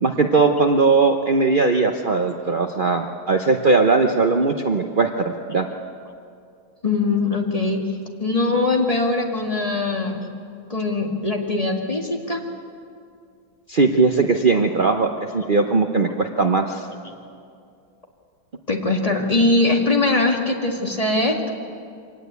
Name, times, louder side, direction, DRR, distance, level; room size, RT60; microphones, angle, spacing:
voice 1, 0.0-5.6 13.7-16.9, right 4 dB, 60° right, 4 dB, 0.5 m, -19 dB
voice 2, 6.8-7.8 8.2-10.3 10.7-12.4 15.4-15.5 16.0-16.1 18.7-21.5, left 2 dB, 20° left, 1 dB, 2.0 m, -21 dB
24.5 x 18.5 x 8.2 m, 2.3 s
omnidirectional pair, 2.2 m